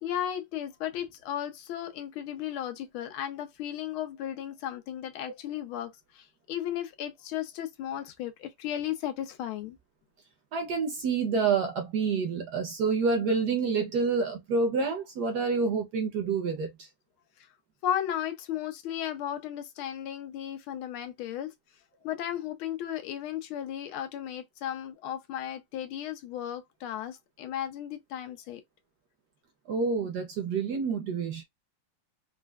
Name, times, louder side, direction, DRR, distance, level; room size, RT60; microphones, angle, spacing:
voice 1, 0.0-9.8 17.4-17.5 17.8-21.5 22.0-28.6, left 10 dB, 85° left, 1.5 m, -35 dB
voice 2, 10.5-16.9 29.7-31.4, right 4 dB, 65° right, 1.1 m, -28 dB
4.2 x 2.2 x 2.3 m
omnidirectional pair, 2.3 m